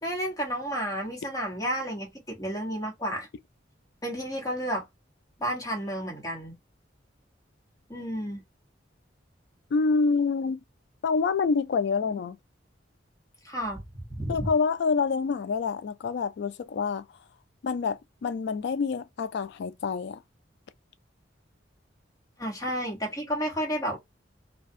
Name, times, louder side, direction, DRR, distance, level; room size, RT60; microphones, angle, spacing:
voice 1, 0.0-3.3 4.0-4.8 5.4-6.5 7.9-8.4 13.4-14.5 22.4-24.0, equal, 20° left, 1.1 m, -31 dB
voice 2, 9.7-10.6 11.0-12.4 14.3-17.0 17.6-20.2, left 5 dB, 65° left, 0.3 m, -27 dB
2.4 x 2.2 x 2.6 m
head